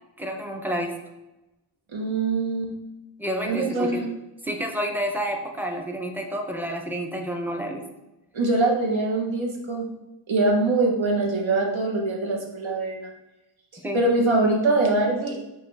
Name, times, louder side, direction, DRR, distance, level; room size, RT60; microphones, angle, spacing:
voice 1, 0.2-0.9 3.2-4.1 4.4-7.8 13.8-14.0, equal, 5° right, 2 dB, 0.5 m, -29 dB
voice 2, 1.9-2.7 3.4-4.1 8.3-9.9 10.3-13.1 13.9-15.4, right 2 dB, 75° right, 1 dB, 0.9 m, -23 dB
5.5 x 2.4 x 3.2 m, 0.96 s
wide cardioid pair, 70°, 47 cm